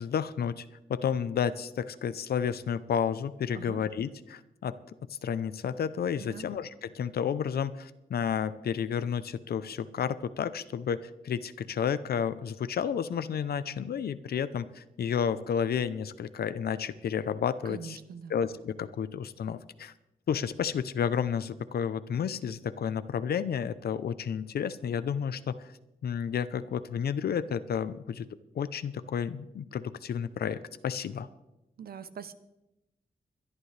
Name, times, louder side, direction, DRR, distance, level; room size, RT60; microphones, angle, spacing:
voice 1, 0.0-4.8 5.1-18.0 18.3-19.9 20.3-25.7 26.0-28.3 28.5-31.3, left 7 dB, 75° left, 14 dB, 0.7 m, -31 dB
voice 2, 17.6-18.4 31.8-32.3, right 7 dB, 70° right, 12 dB, 0.8 m, -43 dB
22.0 x 12.0 x 3.3 m, 0.94 s
wide cardioid pair, 160°, 16 cm